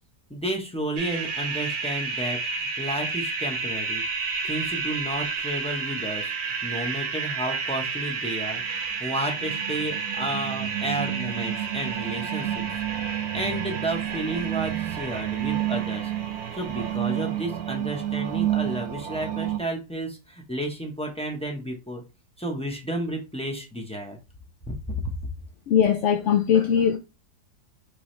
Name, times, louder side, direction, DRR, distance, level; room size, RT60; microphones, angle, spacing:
voice 1, 0.3-4.0 4.4-6.3 6.6-8.6 9.0-12.8 13.3-16.1 16.5-22.0 22.4-24.2 24.7-24.9, right 1 dB, 5° left, 0.5 m, -32 dB
sound 1, 1.0-19.6, right 7 dB, 70° right, 1.2 m, -29 dB
voice 2, 25.7-27.0, left 8 dB, 70° left, 0.7 m, -20 dB
4.5 x 3.4 x 3.1 m
omnidirectional pair, 1.7 m